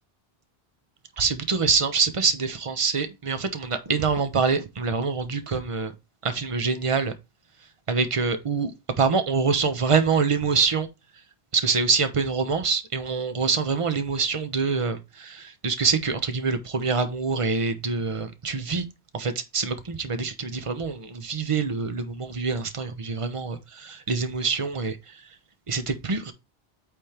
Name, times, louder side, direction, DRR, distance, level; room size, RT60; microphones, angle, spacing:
voice 1, 1.2-5.9 6.2-7.1 7.6-8.7 9.0-10.9 11.5-18.8 19.1-25.4 25.7-26.3, right 5 dB, 30° right, 1.0 m, -25 dB
8.4 x 3.6 x 4.4 m
omnidirectional pair, 1.0 m